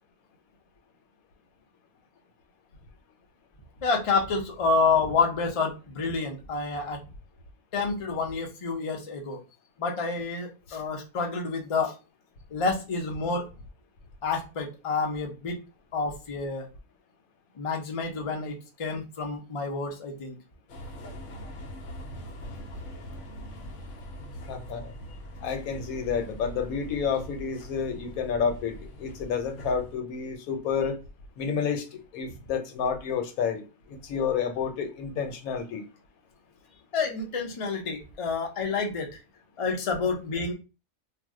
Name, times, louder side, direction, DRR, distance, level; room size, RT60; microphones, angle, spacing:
voice 1, 3.8-7.0 7.7-9.4 9.8-11.9 12.5-13.4 14.2-15.6 15.9-16.7 17.6-20.3 36.9-39.1 39.6-40.5, left 4 dB, 45° left, 0.4 m, -28 dB
sound 1, 20.7-29.9, equal, 65° left, 0.8 m, -42 dB
voice 2, 24.5-24.9 25.4-31.0 31.4-33.6 33.9-35.9, left 6 dB, 85° left, 1.1 m, -30 dB
2.6 x 2.0 x 3.5 m
omnidirectional pair, 1.5 m